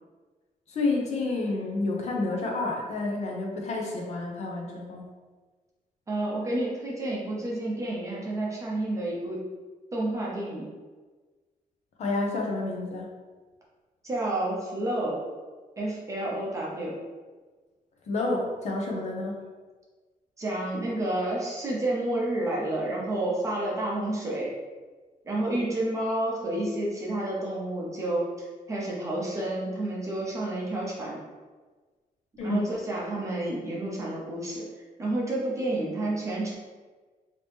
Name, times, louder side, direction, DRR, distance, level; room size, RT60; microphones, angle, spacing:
voice 1, 0.7-5.0 12.0-13.1 18.1-19.4 32.4-32.7, left 2 dB, 50° left, -1 dB, 0.6 m, -29 dB
voice 2, 6.1-9.4 9.9-10.7 14.0-15.2 15.8-16.9 20.4-24.5 25.2-31.2 32.4-34.7 35.0-36.5, right 1 dB, 20° right, -4 dB, 0.8 m, -30 dB
2.9 x 2.8 x 3.4 m, 1.3 s
wide cardioid pair, 175°, 15 cm